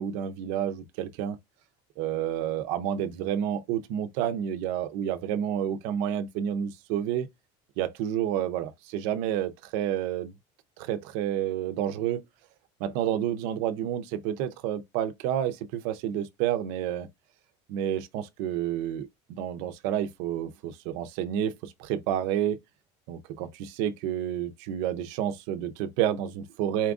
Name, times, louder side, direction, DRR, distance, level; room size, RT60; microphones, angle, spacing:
voice 1, 0.0-1.4 2.0-7.3 7.8-10.3 10.8-12.2 12.8-17.1 17.7-22.6 23.1-26.9, right 10 dB, 65° right, 0.6 m, -30 dB
4.3 x 2.5 x 3.5 m
cardioid pair, 165°, 14 cm